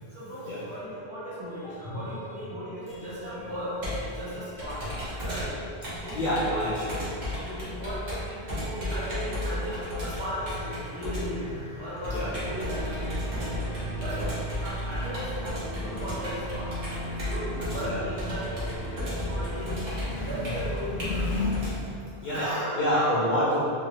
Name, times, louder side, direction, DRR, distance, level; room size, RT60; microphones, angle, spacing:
voice 1, 0.1-4.9 5.2-5.5 5.8-6.7 6.9-7.1 7.4-13.6 14.0-14.3 14.6-16.7 17.1-18.6 18.9-19.9 20.3-21.3 22.3-23.1, equal, 70° right, -14 dB, 1.4 m, -36 dB
Computer keyboard, 2.9-21.7, left 1 dB, 45° right, 0.9 m, -34 dB
voice 2, 6.1-6.9 12.1-12.3 14.1-14.2 17.8-18.0 19.1-19.3 19.9-20.4 21.0-21.9 22.2-22.5 22.8-23.6, left 1 dB, 65° left, -8 dB, 0.7 m, -28 dB
sound 1, 12.2-22.1, right 1 dB, 15° right, 0.7 m, -38 dB
3.0 x 2.4 x 2.8 m, 2.5 s
omnidirectional pair, 1.1 m